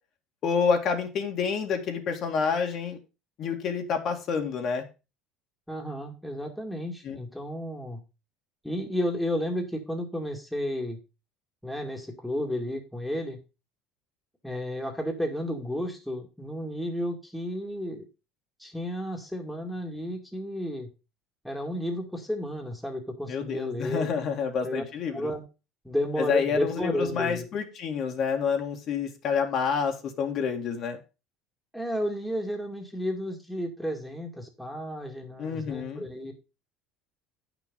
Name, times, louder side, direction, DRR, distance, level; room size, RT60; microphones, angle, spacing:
voice 1, 0.4-3.0 3.4-4.8 7.0-7.2 23.3-25.3 26.2-31.0 35.4-36.0, left 6 dB, 45° left, 3 dB, 2.2 m, -28 dB
voice 2, 5.7-8.0 8.6-11.0 11.6-13.4 14.4-18.0 18.6-20.9 21.4-24.1 24.6-24.8 25.1-25.4 25.8-27.5 31.7-36.3, equal, ahead, 1 dB, 2.1 m, -32 dB
9.0 x 6.1 x 5.3 m, 0.29 s
cardioid pair, 125°, 0 cm